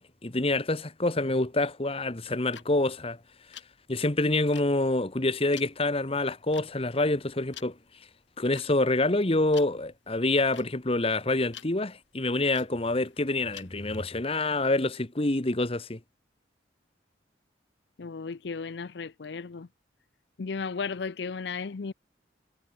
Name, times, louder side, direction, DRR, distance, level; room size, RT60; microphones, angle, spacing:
voice 1, 0.0-3.2 3.9-7.7 8.4-16.0, left 2 dB, 30° left, 1.3 m, -27 dB
sound 1, 2.2-14.0, left 9 dB, 90° left, 6.0 m, -50 dB
voice 2, 18.0-19.7 20.4-21.9, left 5 dB, 70° left, 0.5 m, -35 dB
head